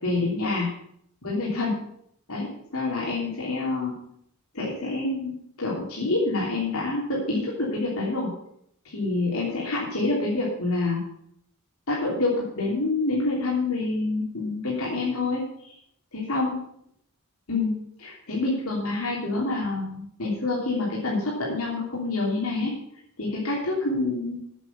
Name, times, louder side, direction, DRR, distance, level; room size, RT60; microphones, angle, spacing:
voice 1, 0.0-0.7 1.2-1.8 2.3-3.9 4.5-8.3 8.8-11.0 11.9-15.7 16.1-16.5 17.5-22.7 23.2-24.4, left 2 dB, 80° left, -4 dB, 3.2 m, -27 dB
8.4 x 8.3 x 8.3 m, 0.71 s
head